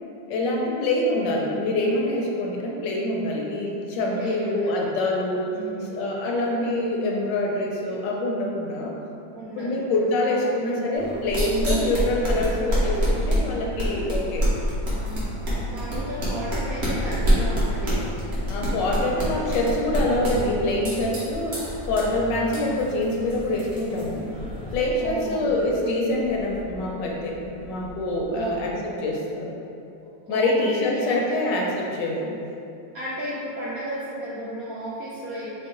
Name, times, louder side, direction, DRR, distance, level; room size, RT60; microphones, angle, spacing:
voice 1, 0.3-5.5 5.9-8.9 9.5-14.4 18.5-24.3 24.7-27.3 27.6-28.7 29.0-29.5 30.3-32.4, left 1 dB, 75° left, -1 dB, 1.1 m, -25 dB
voice 2, 4.1-4.7 5.5-6.0 9.3-10.0 10.3-10.8 14.9-18.1 22.6-22.9 25.0-25.6 28.3-29.1 30.2-31.4 32.9-35.7, right 1 dB, 75° right, -8 dB, 0.8 m, -35 dB
sound 1, 10.9-24.7, equal, 45° right, 1.0 m, -27 dB
sound 2, 16.5-28.9 29.1-29.2, left 1 dB, 35° left, 0.5 m, -40 dB
4.6 x 2.1 x 3.7 m, 2.7 s
omnidirectional pair, 2.1 m